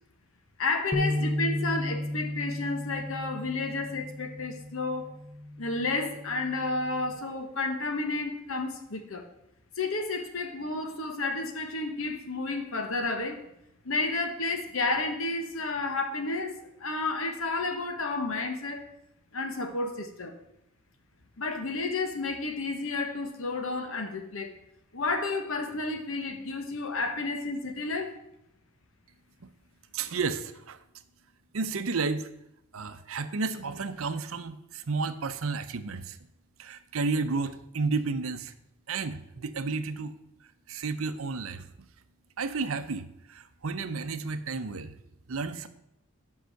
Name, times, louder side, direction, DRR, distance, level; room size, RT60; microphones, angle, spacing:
voice 1, 0.6-5.1 5.6-9.3 9.8-13.4 13.8-16.5 16.8-18.9 19.3-20.3 21.4-24.5 24.9-28.1, left 3 dB, 70° left, 1.2 m, -31 dB
sound 1, 0.9-7.2, left 1 dB, ahead, 0.7 m, -34 dB
voice 2, 29.9-30.8 31.5-32.3 32.7-36.2 36.6-38.5 38.9-40.1 40.7-41.7 42.4-44.9 45.3-45.7, right 4 dB, 70° right, 0.6 m, -32 dB
8.1 x 5.6 x 6.4 m
head